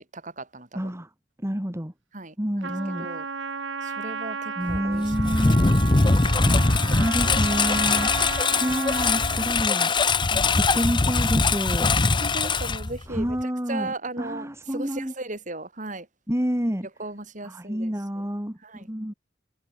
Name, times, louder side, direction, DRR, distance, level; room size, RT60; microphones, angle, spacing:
voice 1, 0.1-0.9 2.1-2.7 3.0-3.2 3.8-5.7 7.8-8.1 10.2-10.6 12.2-13.4 13.7-16.1 17.0-17.9 18.6-18.9, right 2 dB, 40° right, 6.1 m, -37 dB
voice 2, 0.7-1.1 1.4-1.9 2.4-3.1 4.6-5.7 6.4-8.1 8.6-9.9 10.5-12.0 13.1-15.1 16.3-16.9 17.4-19.1, equal, 15° right, 2.5 m, -29 dB
Trumpet, 2.6-9.5, right 5 dB, 80° right, 1.4 m, -33 dB
Engine, 4.7-13.4, left 3 dB, 25° left, 0.8 m, -22 dB
head